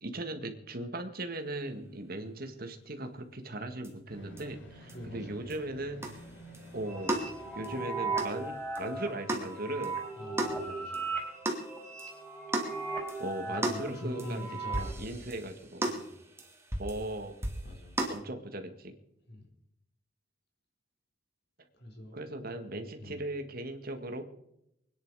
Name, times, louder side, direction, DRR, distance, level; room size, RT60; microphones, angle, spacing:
voice 1, 0.0-6.0 6.7-7.1 7.5-10.0 13.2-14.5 15.0-15.8 16.8-17.3 18.1-18.9 22.1-24.2, right 1 dB, 55° right, 6 dB, 1.9 m, -38 dB
sound 1, 3.8-3.9 4.4-4.5 4.9-5.0 5.5-5.6 6.0-18.2, right 1 dB, 15° right, 2.5 m, -37 dB
sound 2, 4.1-9.1 9.4-9.5, right 1 dB, 85° left, 4.6 m, -51 dB
voice 2, 4.9-5.4 10.1-11.1 13.5-15.3 15.8-16.1 17.6-18.0 19.3-19.4 21.7-22.2 23.0-23.2, left 1 dB, 60° left, 0 dB, 4.4 m, -44 dB
sound 3, 6.9-14.9, right 4 dB, 5° left, 4.7 m, -38 dB
24.5 x 10.0 x 4.9 m, 0.80 s
head